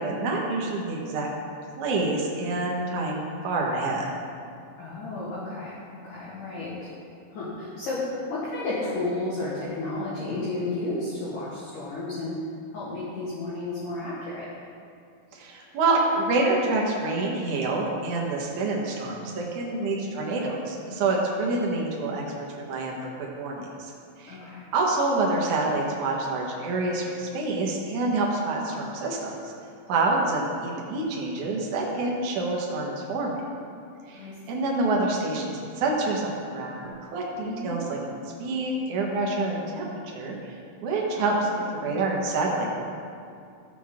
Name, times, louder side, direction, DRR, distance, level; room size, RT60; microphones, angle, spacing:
voice 1, 0.0-1.3 1.8-4.1 15.3-22.2 22.6-23.9 24.2-24.4 24.7-29.5 29.9-33.4 34.1-36.8 37.1-38.0 38.4-39.9 40.1-42.7, right 2 dB, 70° right, -2 dB, 1.9 m, -27 dB
voice 2, 4.8-6.9 7.3-12.4 12.7-14.5 19.9-20.1 24.3-24.6 34.1-34.3 37.4-37.8 41.1-42.0, left 2 dB, 65° left, -7 dB, 2.2 m, -33 dB
14.5 x 7.5 x 3.7 m, 2.4 s
omnidirectional pair, 5.3 m